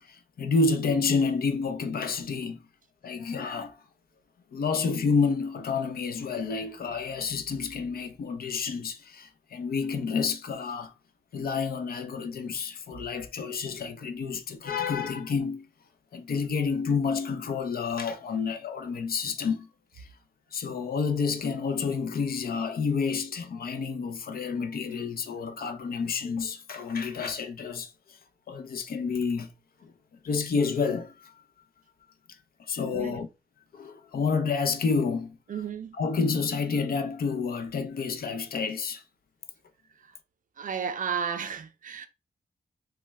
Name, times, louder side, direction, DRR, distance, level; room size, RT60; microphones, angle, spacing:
voice 1, 0.0-2.6 3.0-3.8 4.5-10.9 11.3-15.7 16.1-19.7 20.0-20.1 20.5-28.2 28.5-29.5 29.8-29.9 30.2-31.3 32.6-33.3 33.7-35.6 35.9-39.0, left 5 dB, 65° left, 0.5 m, -29 dB
voice 2, 32.9-33.2 35.5-35.9 40.6-42.1, right 7 dB, 55° right, 0.4 m, -33 dB
3.1 x 2.1 x 3.3 m
wide cardioid pair, 180°, 16 cm